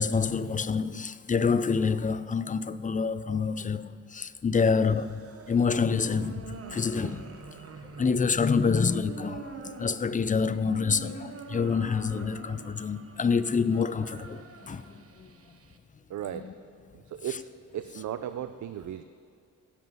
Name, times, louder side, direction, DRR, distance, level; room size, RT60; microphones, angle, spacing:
voice 1, 0.0-5.2 5.5-7.3 8.0-14.8 15.2-15.3 16.3-16.5, left 5 dB, 25° left, 0.4 m, -27 dB
sound 1, 4.5-15.8, right 5 dB, 45° right, 1.0 m, -45 dB
voice 2, 16.1-16.5 16.9-17.5 17.7-19.0, right 10 dB, 60° right, 0.5 m, -36 dB
17.5 x 7.8 x 5.5 m
cardioid pair, 90°, 33 cm